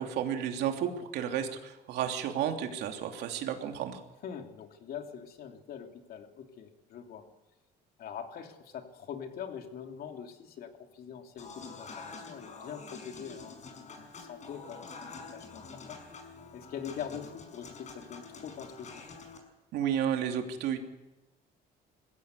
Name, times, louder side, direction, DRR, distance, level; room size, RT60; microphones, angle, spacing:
voice 1, 0.0-4.0 19.7-20.8, right 9 dB, 80° right, 4 dB, 3.0 m, -32 dB
voice 2, 4.2-7.3 8.0-16.0 16.5-19.2, left 8 dB, 65° left, 4 dB, 3.0 m, -43 dB
Human voice / Acoustic guitar / Piano, 11.4-19.4, left 4 dB, 45° left, 5.8 m, -47 dB
21.5 x 16.0 x 8.3 m, 1.1 s
cardioid pair, 110°, 17 cm